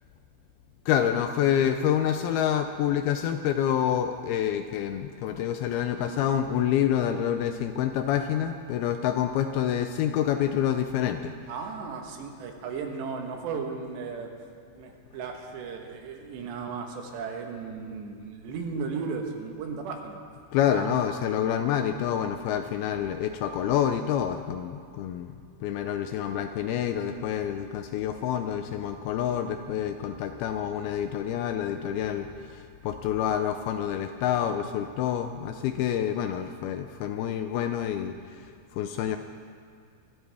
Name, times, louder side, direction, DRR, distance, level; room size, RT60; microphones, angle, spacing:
voice 1, 0.9-11.3 20.5-39.2, left 9 dB, 80° left, 7 dB, 2.3 m, -27 dB
voice 2, 11.5-14.3 14.7-20.2 20.7-20.9, right 5 dB, 85° right, 3 dB, 3.6 m, -35 dB
24.5 x 13.0 x 3.5 m, 2.2 s
omnidirectional pair, 4.8 m